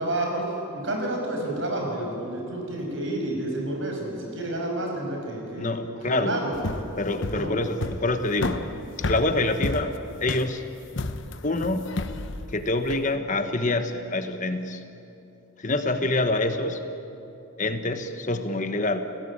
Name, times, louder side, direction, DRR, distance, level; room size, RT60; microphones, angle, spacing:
voice 1, 0.0-5.7 6.0-6.6 7.3-7.5, right 1 dB, 55° right, 1 dB, 6.3 m, -30 dB
voice 2, 5.6-6.4 7.0-8.7 9.1-9.9 10.2-10.6 11.0-11.2 11.4-11.9 12.5-14.8 15.6-16.8 17.6-19.0, left 2 dB, 35° left, 8 dB, 1.1 m, -26 dB
sound 1, 6.5-13.1, left 2 dB, 55° left, 1.0 m, -32 dB
30.0 x 17.5 x 8.8 m, 2.8 s
head